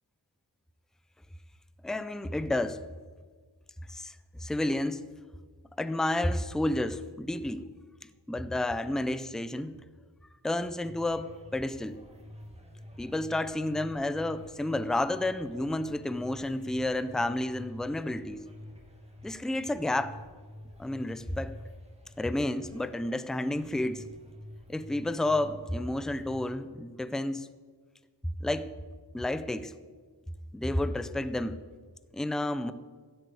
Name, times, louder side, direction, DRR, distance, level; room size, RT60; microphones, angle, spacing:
voice 1, 1.8-2.8 3.9-5.1 5.8-7.7 8.3-9.7 10.4-12.0 13.0-18.4 19.2-20.2 20.8-21.6 22.2-24.0 24.7-27.5 28.4-28.7 29.1-29.7 30.5-31.6 32.1-32.7, left 1 dB, ahead, 12 dB, 0.5 m, -31 dB
sound 1, 10.8-26.6, left 1 dB, 15° right, 2.1 m, -49 dB
15.5 x 7.9 x 8.0 m, 1.5 s
wide cardioid pair, 135°, 43 cm